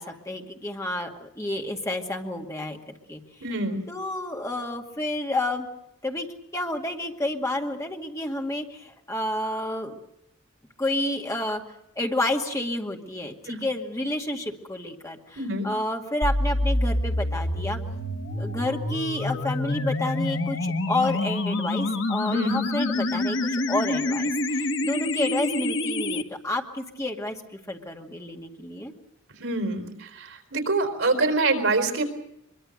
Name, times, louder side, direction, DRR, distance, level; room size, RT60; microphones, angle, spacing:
voice 1, 0.0-3.2 3.9-5.7 6.0-6.3 6.5-10.0 10.8-11.6 12.0-17.8 18.3-28.9, left 1 dB, 15° left, 2 dB, 2.2 m, -30 dB
voice 2, 3.4-3.8 13.5-13.6 15.4-15.7 22.3-22.6 29.4-32.0, right 3 dB, 75° right, 7 dB, 4.2 m, -25 dB
sound 1, 16.2-26.2, left 2 dB, 60° left, 1.4 m, -27 dB
24.0 x 23.0 x 6.6 m, 0.84 s
head